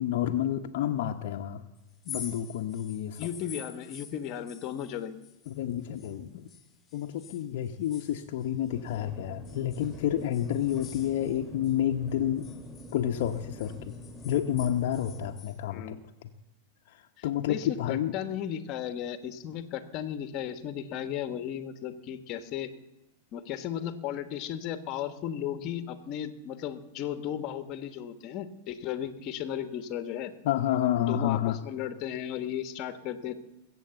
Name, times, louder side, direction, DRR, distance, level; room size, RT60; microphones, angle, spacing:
voice 1, 0.0-1.7 2.1-3.3 5.5-6.5 6.9-12.5 12.9-14.0 14.2-16.3 16.9-18.1 30.4-31.6, left 11 dB, 65° left, 5 dB, 0.8 m, -30 dB
sound 1, 1.9-6.2 6.5-9.0 9.4-11.8 12.1-15.6, left 6 dB, 20° left, 1.9 m, -48 dB
voice 2, 3.2-5.2 15.7-16.0 17.2-22.7 23.3-30.3 31.0-33.4, left 10 dB, 40° left, 11 dB, 1.2 m, -35 dB
sound 2, 8.7-15.3, left 1 dB, 5° left, 4.5 m, -45 dB
20.5 x 7.9 x 7.9 m, 1.0 s
hypercardioid pair, 130°, 0 cm